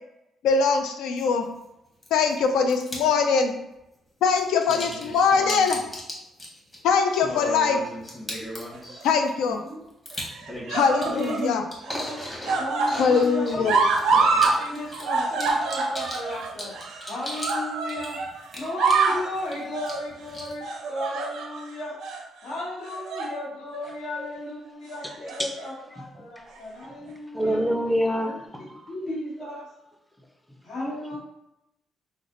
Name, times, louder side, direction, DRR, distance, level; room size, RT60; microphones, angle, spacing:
voice 1, 0.4-1.5 2.1-3.5 4.2-5.8 6.8-7.8 9.0-9.6 10.7-11.6 13.0-13.8, left 5 dB, 85° left, 5 dB, 0.4 m, -22 dB
sound 1, 1.2-1.3 2.0-2.3 2.7-3.1 4.3-17.6 17.9-19.5 19.9-20.6, left 1 dB, 20° left, 1.0 m, -37 dB
sound 2, 8.7-9.3 10.2-11.5 11.8-14.6 14.8-18.3 18.6-19.3 19.7-20.0 20.6-21.6 22.0-22.2 22.9-23.4 23.7-23.9 25.0-25.7 26.6-26.7, right 4 dB, 80° right, 0.4 m, -26 dB
voice 2, 11.0-13.6 13.9-18.2 18.5-22.0 22.4-27.6 28.2-28.4 28.9-29.7 30.6-31.2, left 1 dB, 70° left, -6 dB, 1.4 m, -35 dB
voice 3, 27.3-28.8, equal, 5° left, 3 dB, 0.5 m, -26 dB
3.2 x 2.1 x 3.7 m, 0.88 s
cardioid pair, 90°, 0 cm